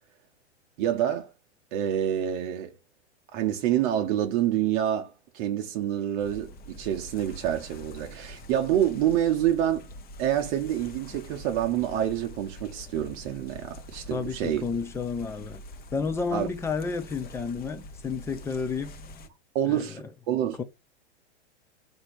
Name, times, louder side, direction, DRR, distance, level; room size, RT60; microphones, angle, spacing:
voice 1, 0.8-1.3 1.7-2.7 3.3-9.9 10.2-14.7 16.3-16.5 19.5-20.6, right 11 dB, 45° right, 0.7 m, -27 dB
sound 1, 6.2-19.3, equal, 25° left, 0.9 m, -45 dB
voice 2, 14.1-15.6 15.9-19.0 19.7-19.8 20.6-20.7, left 5 dB, 10° left, 0.3 m, -31 dB
4.1 x 2.6 x 4.3 m
hypercardioid pair, 110°, 34 cm